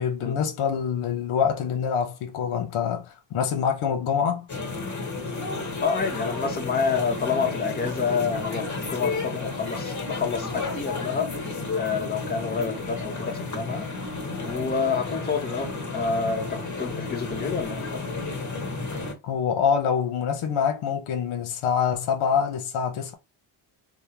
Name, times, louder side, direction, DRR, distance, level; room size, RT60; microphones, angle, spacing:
voice 1, 0.0-4.5 19.2-23.1, left 7 dB, 80° left, 0.8 m, -25 dB
sound 1, 4.5-19.1, left 3 dB, 35° left, 1.3 m, -32 dB
voice 2, 5.8-11.3 11.8-13.9 14.4-18.1, left 5 dB, 20° left, 0.8 m, -28 dB
3.5 x 2.1 x 2.8 m
cardioid pair, 75°, 49 cm